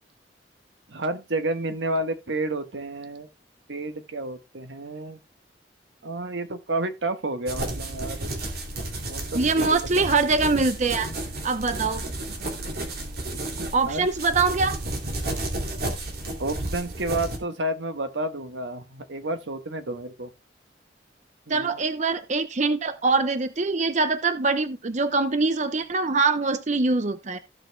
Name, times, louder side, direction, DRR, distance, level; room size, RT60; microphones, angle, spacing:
voice 1, 0.9-3.3 3.7-5.2 6.0-8.3 9.1-9.8 12.4-12.5 13.6-14.1 16.4-20.3 21.5-21.8, right 2 dB, 85° right, 1.3 m, -30 dB
sound 1, 7.5-17.4, right 1 dB, 60° right, 2.6 m, -32 dB
voice 2, 9.3-11.1 11.4-12.0 13.7-14.8 21.5-27.4, right 3 dB, 40° right, 0.7 m, -23 dB
15.5 x 6.5 x 2.2 m
head